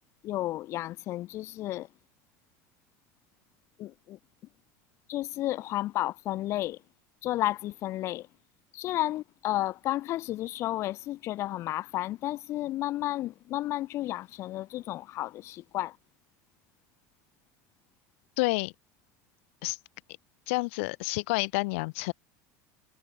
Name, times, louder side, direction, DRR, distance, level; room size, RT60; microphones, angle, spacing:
voice 1, 0.2-1.9 3.8-4.2 5.1-6.8 7.2-8.3 8.7-16.0, left 15 dB, 40° left, 2.5 m, -32 dB
voice 2, 18.4-18.7 19.6-19.8 20.5-22.1, left 26 dB, 75° left, 3.3 m, -29 dB
cardioid pair, 160°, 7 cm